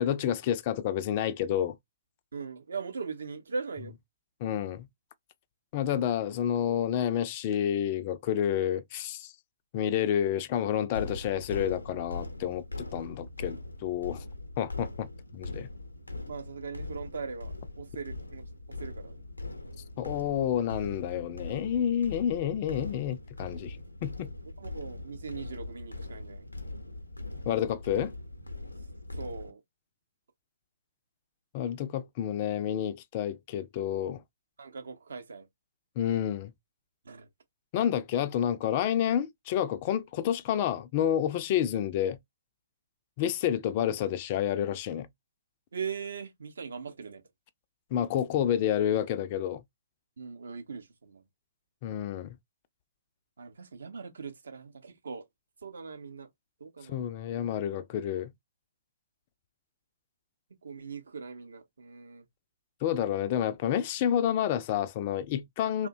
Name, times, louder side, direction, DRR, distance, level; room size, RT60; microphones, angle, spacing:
voice 1, 0.0-1.8 4.4-4.9 5.7-9.3 9.7-14.2 14.6-15.7 20.0-23.8 24.0-24.3 27.5-28.1 31.5-34.2 36.0-36.5 37.7-42.2 43.2-45.1 47.9-49.6 51.8-52.4 56.9-58.3 62.8-65.9, left 10 dB, 40° left, 0.3 m, -29 dB
voice 2, 2.3-3.9 16.3-18.4 18.7-19.3 24.6-26.5 29.2-29.6 34.6-35.5 37.1-37.3 45.7-47.2 50.2-51.2 53.4-55.2 55.6-56.3 56.6-57.0 60.6-62.3 65.8-65.9, right 5 dB, 65° right, 0.6 m, -40 dB
sound 1, 10.9-29.5, left 2 dB, 85° left, 0.6 m, -41 dB
2.5 x 2.1 x 2.6 m
figure-of-eight pair, 120°, 0 cm